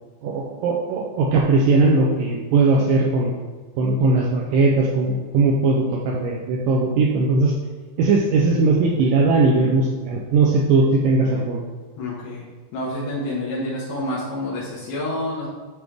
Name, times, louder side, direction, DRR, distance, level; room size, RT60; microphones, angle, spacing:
voice 1, 0.2-3.3 3.8-7.5 8.0-11.6, right 3 dB, 90° right, -1 dB, 1.9 m, -19 dB
voice 2, 12.0-12.5 12.7-15.5, left 1 dB, 75° left, -7 dB, 3.1 m, -28 dB
10.0 x 3.5 x 3.3 m, 1.4 s
omnidirectional pair, 4.6 m